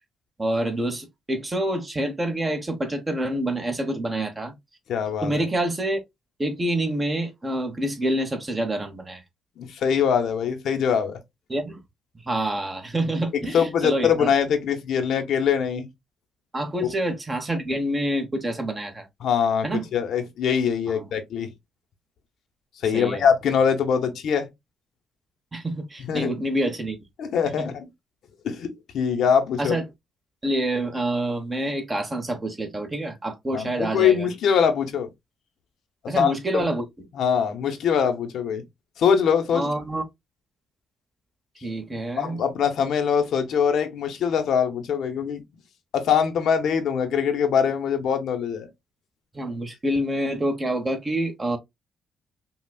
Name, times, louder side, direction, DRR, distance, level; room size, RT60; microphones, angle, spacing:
voice 1, 0.4-4.5 5.2-6.0 6.4-9.2 11.5-11.8 12.3-14.3 16.5-19.1 19.6-19.9 20.9-21.1 22.8-23.2 25.5-27.0 27.6-27.7 29.6-29.8 30.4-34.3 36.1-36.8 39.5-40.0 41.6-42.4 49.3-51.6, right 1 dB, 20° right, 1.2 m, -27 dB
voice 2, 4.9-5.5 9.6-11.2 13.3-15.9 19.2-21.5 22.8-24.5 26.1-26.4 27.2-27.8 28.4-29.8 33.5-35.1 36.2-36.7 37.1-38.6 39.0-39.7 42.2-45.4 45.9-48.7, left 7 dB, 70° left, 0.9 m, -23 dB
5.6 x 2.4 x 2.3 m
cardioid pair, 90°, 0 cm